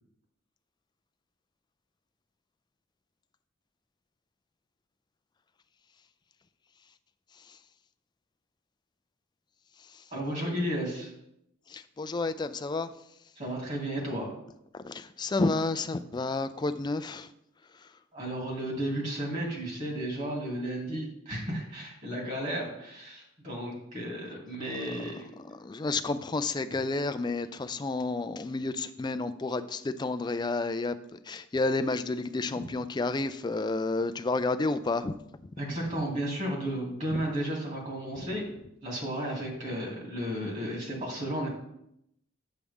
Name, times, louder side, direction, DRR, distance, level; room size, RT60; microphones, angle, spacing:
voice 1, 10.1-11.1 13.4-14.4 18.1-25.3 35.6-38.5 38.8-41.5, right 1 dB, 35° right, -2 dB, 2.6 m, -33 dB
voice 2, 11.7-12.9 14.8-17.3 17.7-17.9 24.8-25.1 25.4-35.1 37.1-37.2, left 3 dB, 20° left, 11 dB, 0.3 m, -31 dB
8.2 x 7.4 x 3.5 m, 0.79 s
head